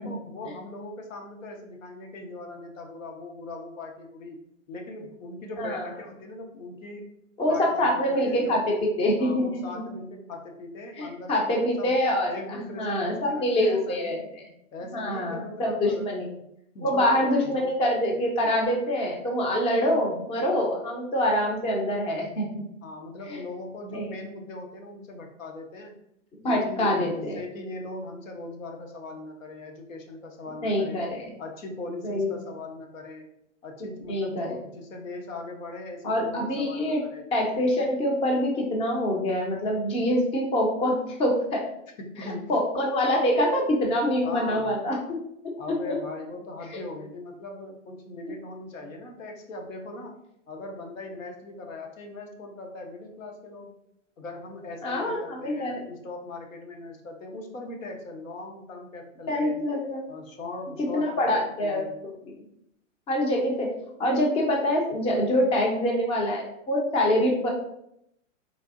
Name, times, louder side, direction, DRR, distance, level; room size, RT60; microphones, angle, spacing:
voice 1, 0.0-4.4 4.7-7.1 7.5-8.6 9.2-11.9 12.3-14.2 14.7-16.1 16.7-17.1 17.4-17.8 22.8-25.9 26.4-31.0 31.4-33.2 33.6-37.3 42.0-42.4 44.2-44.8 45.6-50.2 50.5-53.7 54.2-59.6 60.1-62.0, left 2 dB, 85° left, 2 dB, 0.9 m, -40 dB
voice 2, 7.4-9.8 11.0-14.2 14.9-16.3 16.8-22.6 23.3-23.4 23.9-24.1 26.4-27.4 30.6-31.3 32.0-32.3 34.1-34.5 36.0-37.0 37.3-41.6 42.5-45.0 45.7-46.0 54.8-55.8 59.3-60.0 60.9-62.1 63.1-63.7 64.0-67.5, left 1 dB, 15° left, 0 dB, 0.5 m, -25 dB
3.4 x 2.6 x 2.4 m, 0.77 s
hypercardioid pair, 125°, 38 cm